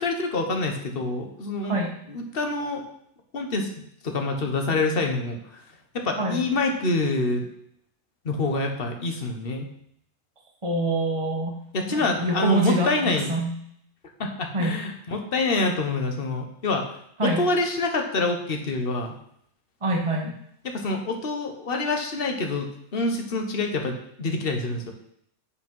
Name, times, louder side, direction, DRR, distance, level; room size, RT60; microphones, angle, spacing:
voice 1, 0.0-1.8 2.1-2.8 3.3-3.7 4.0-5.4 5.9-7.4 8.2-9.6 11.7-13.3 14.2-16.9 17.2-19.1 20.6-24.9, left 2 dB, 40° left, 4 dB, 1.4 m, -26 dB
voice 2, 10.6-11.6 11.9-13.5 14.5-14.7 17.2-17.4 19.8-20.3, right 1 dB, 25° right, 0 dB, 1.1 m, -25 dB
8.6 x 5.2 x 5.5 m, 0.69 s
omnidirectional pair, 1.5 m